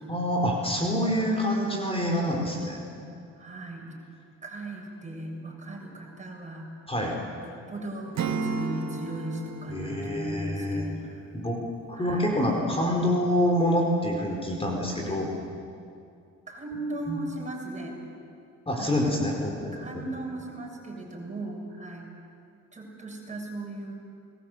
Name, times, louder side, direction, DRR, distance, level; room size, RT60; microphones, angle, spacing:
voice 1, 0.1-2.9 6.9-7.2 9.7-10.8 11.3-11.6 11.9-15.3 17.1-17.2 18.7-20.0, equal, 20° left, 0 dB, 4.8 m, -26 dB
voice 2, 3.3-4.0 4.4-6.7 7.4-11.3 11.9-12.3 15.0-15.2 16.5-18.0 18.7-19.0 19.7-22.1 22.7-23.9, right 2 dB, 25° right, 0 dB, 7.0 m, -37 dB
Acoustic guitar / Strum, 8.2-11.2, right 4 dB, 60° right, 2.0 m, -33 dB
28.5 x 20.5 x 8.2 m, 2.4 s
cardioid pair, 90°, 30 cm